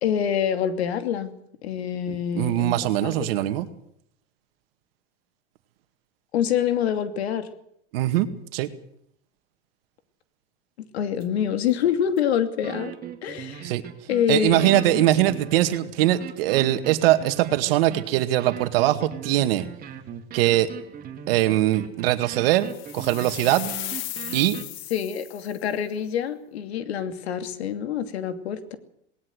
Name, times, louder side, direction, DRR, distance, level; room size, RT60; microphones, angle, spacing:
voice 1, 0.0-1.3 1.6-2.7 3.0-3.4 6.3-7.5 10.8-12.9 13.2-13.7 14.1-15.1 24.9-28.8, left 9 dB, 85° left, 9 dB, 2.7 m, -26 dB
voice 2, 2.1-3.7 7.9-8.7 13.6-13.8 14.3-19.7 20.3-20.7 21.3-23.7 24.3-24.6, right 14 dB, 65° right, 10 dB, 2.1 m, -22 dB
sound 1, 11.2-11.3 11.7-11.8 12.2-12.3 12.6-24.6, right 9 dB, 30° right, 2.6 m, -39 dB
sound 2, 22.6-25.7, left 18 dB, 40° left, 0.8 m, -36 dB
19.5 x 18.5 x 8.0 m, 0.71 s
supercardioid pair, 140°, 31 cm